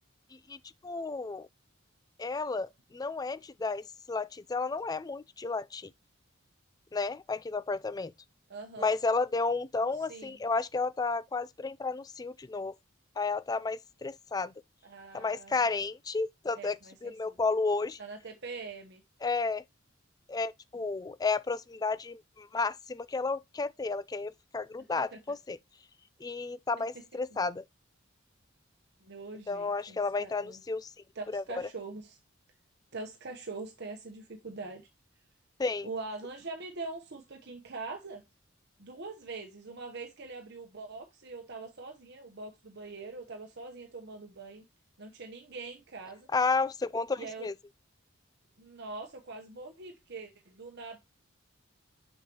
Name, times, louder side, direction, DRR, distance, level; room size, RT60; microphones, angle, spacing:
voice 1, 0.5-1.5 2.2-5.9 6.9-8.1 8.8-12.7 13.2-14.5 15.1-18.0 19.2-19.6 20.3-25.6 26.2-27.6 29.5-30.9 31.3-31.7 35.6-35.9 46.3-47.5, left 4 dB, 20° left, 0.3 m, -32 dB
voice 2, 8.5-8.9 9.9-10.4 14.8-15.8 16.5-17.4 18.0-19.0 25.0-25.2 26.8-26.9 27.3-27.4 29.0-30.6 31.1-32.2 32.9-34.9 35.8-38.2 38.8-44.6 45.0-46.3 47.2-47.5 48.6-51.0, right 3 dB, 55° right, 1.0 m, -43 dB
6.5 x 6.5 x 2.9 m
head